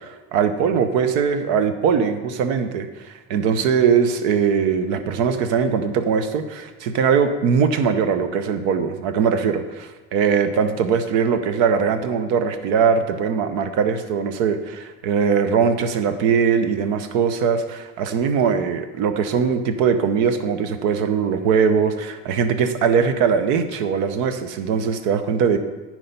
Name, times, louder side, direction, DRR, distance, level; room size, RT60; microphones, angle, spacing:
voice 1, 0.0-25.6, right 6 dB, 85° right, 9 dB, 0.8 m, -21 dB
10.0 x 4.6 x 5.4 m, 1.3 s
cardioid pair, 110°, 30 cm